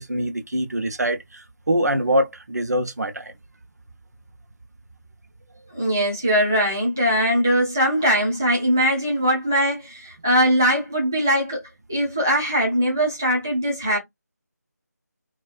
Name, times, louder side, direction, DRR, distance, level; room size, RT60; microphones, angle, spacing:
voice 1, 0.0-3.3, right 1 dB, 65° right, 0.7 m, -24 dB
voice 2, 5.7-11.6 11.9-14.0, equal, 10° right, 0.3 m, -21 dB
2.4 x 2.4 x 2.4 m
figure-of-eight pair, 165°, 10 cm